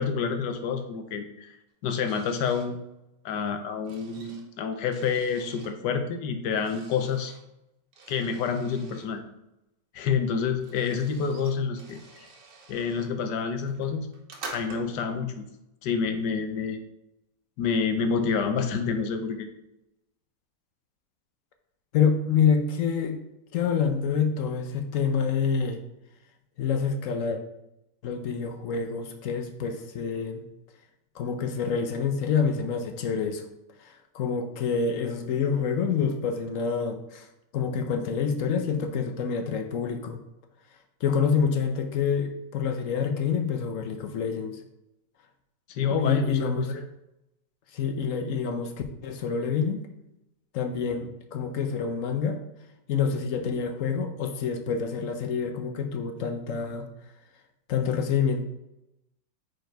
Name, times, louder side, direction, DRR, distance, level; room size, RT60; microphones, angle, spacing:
voice 1, 0.0-1.6 1.8-2.8 3.2-7.3 8.1-9.2 9.9-12.3 12.7-14.1 14.5-15.5 15.8-16.8 17.6-19.5 45.7-46.8, left 6 dB, 85° left, 7 dB, 1.3 m, -28 dB
sound 1, 2.0-2.7 3.4-5.7 6.5-7.4 7.9-9.1 10.1-10.2 10.4-13.1 13.6-15.1, right 3 dB, 80° right, 1.7 m, -47 dB
voice 2, 21.9-23.2 23.5-25.8 26.6-27.4 28.0-30.4 31.2-33.4 33.8-37.3 37.5-40.2 41.0-44.6 45.8-46.7 47.7-48.7 49.0-49.8 50.5-52.4 52.9-56.9 57.7-58.4, left 6 dB, 65° left, 6 dB, 0.8 m, -27 dB
4.7 x 4.7 x 4.4 m, 0.88 s
omnidirectional pair, 1.8 m